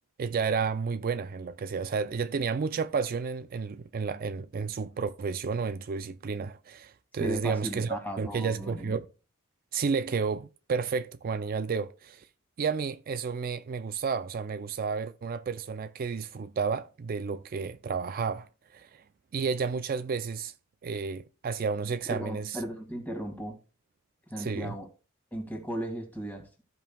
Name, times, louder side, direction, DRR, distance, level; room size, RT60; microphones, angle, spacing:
voice 1, 0.2-9.1 9.7-12.3 12.6-19.0 19.3-20.5 20.8-22.6 24.4-24.8, right 5 dB, 45° right, 0.4 m, -31 dB
voice 2, 7.2-9.0 22.0-23.6 24.3-24.9 25.3-26.5, equal, 10° left, 2.0 m, -36 dB
15.0 x 5.4 x 2.3 m
head